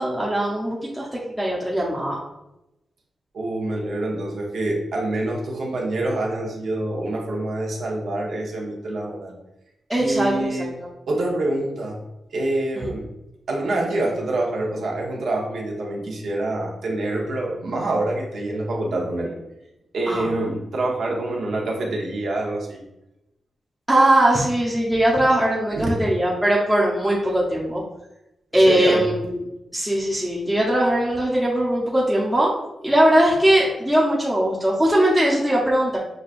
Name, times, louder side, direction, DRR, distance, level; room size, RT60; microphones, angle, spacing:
voice 1, 0.0-2.2 9.9-10.9 12.8-12.9 20.1-20.3 23.9-27.8 28.5-29.3 29.7-32.5 32.8-36.0, right 1 dB, 5° right, -5 dB, 0.7 m, -20 dB
voice 2, 3.3-9.3 10.0-10.7 11.1-12.0 12.3-13.1 13.5-19.4 19.9-22.8 25.7-25.9 28.5-29.1, right 2 dB, 75° right, -1 dB, 0.8 m, -26 dB
6.1 x 2.3 x 2.5 m, 0.90 s
wide cardioid pair, 110°, 0 cm